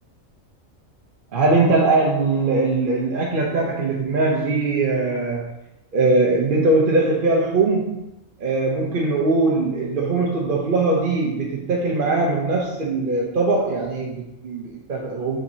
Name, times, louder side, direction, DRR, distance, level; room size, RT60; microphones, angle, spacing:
voice 1, 1.3-5.5 5.9-8.0 8.4-15.4, right 3 dB, 50° right, -2 dB, 0.7 m, -21 dB
6.1 x 5.7 x 2.7 m, 0.92 s
omnidirectional pair, 1.4 m